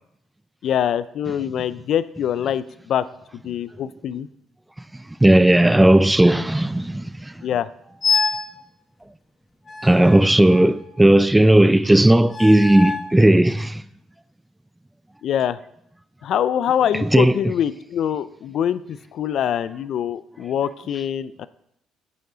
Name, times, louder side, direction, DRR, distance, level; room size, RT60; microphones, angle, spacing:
voice 1, 0.6-3.0 3.3-4.3 7.4-7.7 15.2-15.6 16.2-21.5, left 9 dB, 60° left, 0.4 m, -24 dB
voice 2, 5.2-7.3 9.8-13.8 17.0-17.3, right 1 dB, 10° right, 0.4 m, -15 dB
sound 1, 8.0-8.5 9.7-10.9 12.3-13.1, left 5 dB, 35° left, 1.4 m, -26 dB
9.3 x 8.0 x 3.9 m
cardioid pair, 95°, 0 cm